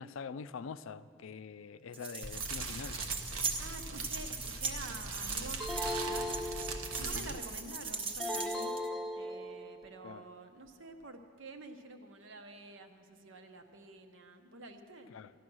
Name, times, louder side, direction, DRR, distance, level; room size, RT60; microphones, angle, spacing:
voice 1, 0.0-3.0 7.0-7.4 10.0-10.2 15.1-15.3, left 5 dB, 65° left, 15 dB, 0.4 m, -45 dB
sound 1, 1.9-8.9, right 4 dB, 25° right, 0.9 m, -39 dB
Fire, 2.2-7.3, right 3 dB, 90° right, 1.1 m, -42 dB
voice 2, 3.6-6.4 7.0-8.7 9.1-15.1, right 2 dB, 65° right, 6 dB, 1.0 m, -49 dB
sound 2, 5.6-7.2 8.2-9.8, left 1 dB, ahead, 0.7 m, -37 dB
14.5 x 11.0 x 6.2 m, 2.3 s
head